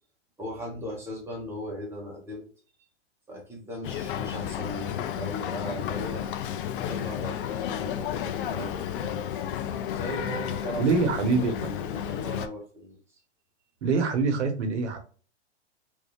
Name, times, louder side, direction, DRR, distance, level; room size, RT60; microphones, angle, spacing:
voice 1, 0.4-2.5 3.3-6.2 6.7-9.3 9.9-13.0, equal, 5° right, -3 dB, 1.2 m, -38 dB
Boat Water vehicle, 3.8-12.5, left 9 dB, 50° left, 0.4 m, -32 dB
voice 2, 10.8-11.5 13.8-15.0, right 4 dB, 75° right, 6 dB, 1.1 m, -24 dB
3.2 x 2.7 x 2.9 m, 0.39 s
hypercardioid pair, 130°, 35 cm